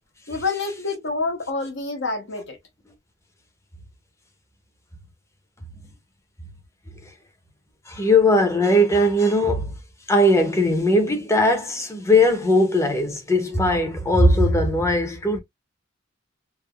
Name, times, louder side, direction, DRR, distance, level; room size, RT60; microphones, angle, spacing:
voice 1, 0.3-2.6, left 3 dB, 65° left, 0.8 m, -27 dB
voice 2, 7.9-9.7 10.1-15.4, left 1 dB, 15° left, 0.7 m, -19 dB
3.2 x 2.0 x 2.3 m
head